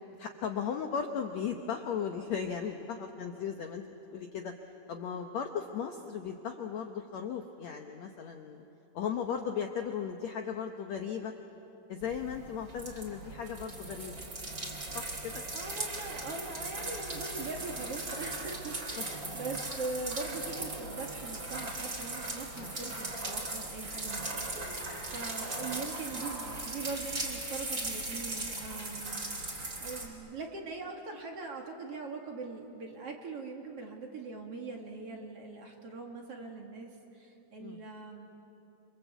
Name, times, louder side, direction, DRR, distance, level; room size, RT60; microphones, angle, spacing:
voice 1, 0.2-3.8 4.1-4.5 4.9-8.6 8.9-11.3 11.9-14.2 14.9-15.4 19.0-19.1 22.6-22.8 24.8-25.1 28.9-29.4 37.6-37.9, left 7 dB, 70° left, 4 dB, 1.7 m, -37 dB
sound 1, 12.0-30.1, right 2 dB, 25° right, 3.4 m, -38 dB
voice 2, 15.5-38.3, right 3 dB, 45° right, 2 dB, 2.6 m, -42 dB
28.0 x 25.5 x 8.2 m, 2.9 s
omnidirectional pair, 4.4 m